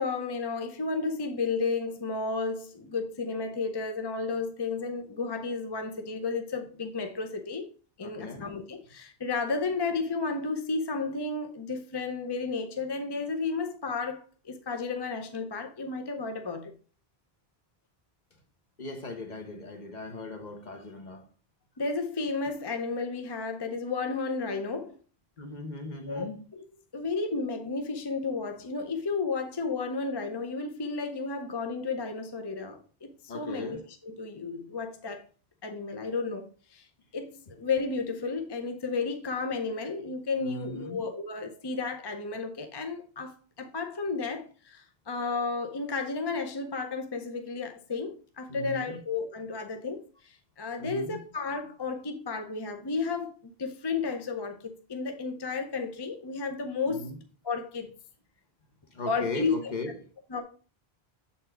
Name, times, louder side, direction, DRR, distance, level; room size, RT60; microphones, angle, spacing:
voice 1, 0.0-7.7 8.0-16.7 21.8-25.0 26.1-26.6 26.9-35.2 35.6-36.9 37.1-53.3 53.6-57.1 57.4-57.9 59.1-59.9 60.3-60.4, left 4 dB, 30° left, 0.5 m, -33 dB
voice 2, 8.0-8.5 18.8-21.2 25.4-26.3 33.3-33.8 40.4-41.0 48.5-49.0 50.8-51.2 56.9-57.2 58.9-60.0, left 2 dB, 45° left, 1.0 m, -38 dB
6.8 x 4.3 x 4.4 m
omnidirectional pair, 1.0 m